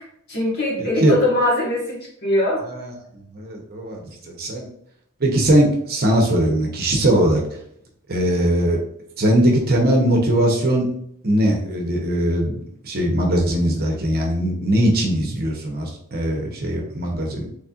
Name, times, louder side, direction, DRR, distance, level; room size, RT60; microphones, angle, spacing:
voice 1, 0.0-2.7, left 1 dB, 50° left, -4 dB, 1.4 m, -22 dB
voice 2, 0.8-1.2 2.7-2.9 3.3-4.7 5.2-7.6 8.1-8.8 9.2-10.9 11.2-12.6 12.8-17.5, right 1 dB, 45° right, 0 dB, 0.8 m, -20 dB
4.2 x 3.2 x 2.4 m, 0.67 s
head